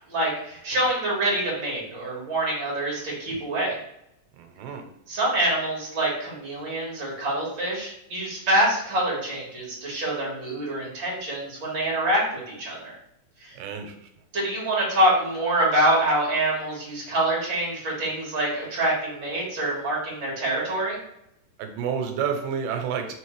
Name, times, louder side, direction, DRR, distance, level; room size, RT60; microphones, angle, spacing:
voice 1, 0.1-3.8 5.1-12.9 13.4-13.6 14.3-21.0, right 1 dB, 45° right, -5 dB, 1.9 m, -25 dB
voice 2, 4.3-4.8 13.5-14.1 21.6-23.1, right 7 dB, 90° right, 4 dB, 2.2 m, -30 dB
4.9 x 3.1 x 3.1 m, 0.79 s
omnidirectional pair, 3.9 m